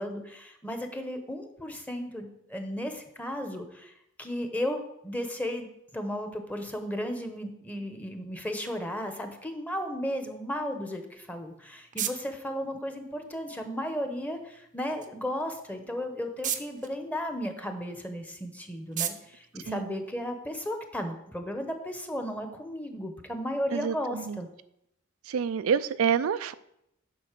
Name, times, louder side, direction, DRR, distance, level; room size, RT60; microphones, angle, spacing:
voice 1, 0.0-3.9 4.2-5.7 5.9-24.5, equal, 5° left, 5 dB, 1.0 m, -34 dB
sound 1, 11.2-20.6, right 10 dB, 40° right, 0.6 m, -41 dB
voice 2, 23.7-24.4 25.3-26.5, right 7 dB, 85° right, 13 dB, 0.4 m, -28 dB
7.8 x 5.3 x 6.7 m, 0.80 s
head